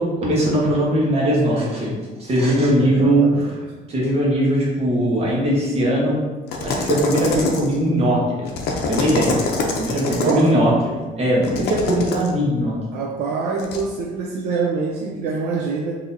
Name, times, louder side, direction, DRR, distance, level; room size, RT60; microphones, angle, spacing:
voice 1, 0.0-1.9 2.2-3.5 3.9-6.2 6.6-8.5 8.9-9.4 9.8-10.7 11.2-12.8, right 1 dB, 35° right, -5 dB, 1.1 m, -19 dB
voice 2, 2.8-3.6 10.1-10.6 12.9-15.9, right 4 dB, 75° right, 0 dB, 0.4 m, -25 dB
sound 1, 6.5-7.8 8.5-10.5 11.4-12.3 13.6-13.8, left 3 dB, 75° left, 0.6 m, -25 dB
3.7 x 2.8 x 2.6 m, 1.3 s
cardioid pair, 125°, 17 cm